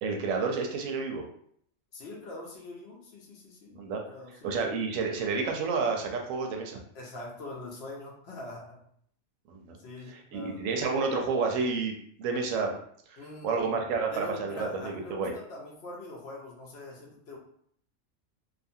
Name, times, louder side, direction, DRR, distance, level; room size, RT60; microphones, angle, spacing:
voice 1, 0.0-1.2 3.8-4.0 4.4-6.8 9.5-9.8 10.1-12.8 13.1-13.2 13.4-15.3, right 4 dB, 85° right, 2 dB, 1.0 m, -30 dB
voice 2, 1.9-4.7 6.9-8.8 9.8-10.6 13.2-13.8 14.1-17.4, left 1 dB, 60° left, -2 dB, 0.8 m, -43 dB
2.7 x 2.4 x 2.6 m, 0.66 s
omnidirectional pair, 1.3 m